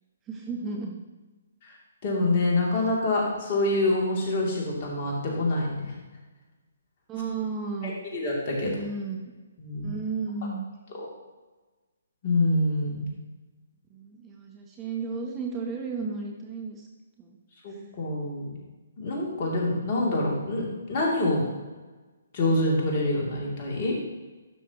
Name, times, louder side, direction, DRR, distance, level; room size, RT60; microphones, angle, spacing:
voice 1, 0.3-1.0 7.1-7.9 8.6-9.2 9.8-10.7 13.9-16.9 17.2-17.4 17.7-17.8, right 4 dB, 20° right, 1 dB, 0.9 m, -33 dB
voice 2, 2.0-5.9 8.1-8.7 9.6-9.9 12.2-13.1 17.6-18.5 19.0-21.5 22.3-24.1, left 2 dB, 40° left, -3 dB, 2.8 m, -26 dB
12.0 x 6.2 x 3.0 m, 1.2 s
figure-of-eight pair, 140°, 0 cm